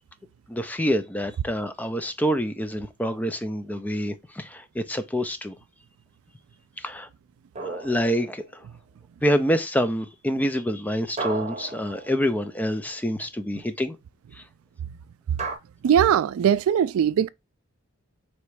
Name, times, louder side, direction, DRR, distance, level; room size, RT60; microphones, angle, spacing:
voice 1, 0.5-5.5 6.8-7.1 7.6-8.6 9.2-14.0 14.3-14.4, equal, 5° left, 0.3 m, -27 dB
sound 1, 7.6-8.8 11.2-12.8 15.4-15.6, right 3 dB, 30° right, 0.7 m, -35 dB
voice 2, 15.8-17.3, right 9 dB, 80° right, 0.3 m, -20 dB
3.3 x 3.0 x 4.7 m
head